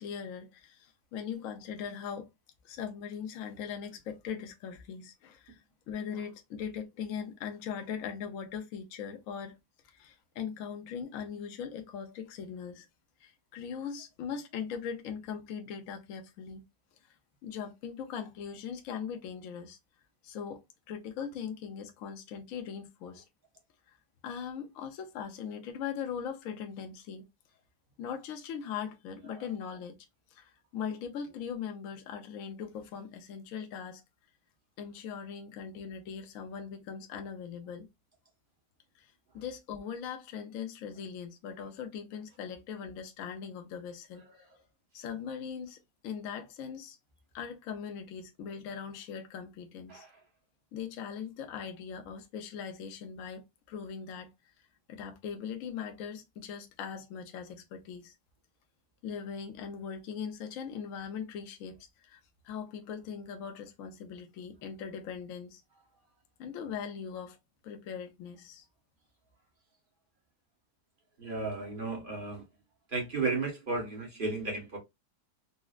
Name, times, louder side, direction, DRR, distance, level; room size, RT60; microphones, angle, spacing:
voice 1, 0.0-2.3 2.6-5.6 5.9-9.6 9.8-12.9 13.2-16.6 17.4-19.8 20.2-23.2 24.2-27.3 28.0-30.0 30.3-34.0 34.8-37.9 38.9-39.1 39.3-44.2 44.9-47.0 47.3-50.0 50.7-54.3 54.9-58.1 59.0-61.8 62.0-65.6 66.4-67.4 67.6-68.6, left 7 dB, 65° left, 0.9 m, -40 dB
voice 2, 71.2-72.4 72.9-74.8, right 3 dB, 35° right, 1.1 m, -33 dB
4.1 x 2.0 x 2.3 m
omnidirectional pair, 1.8 m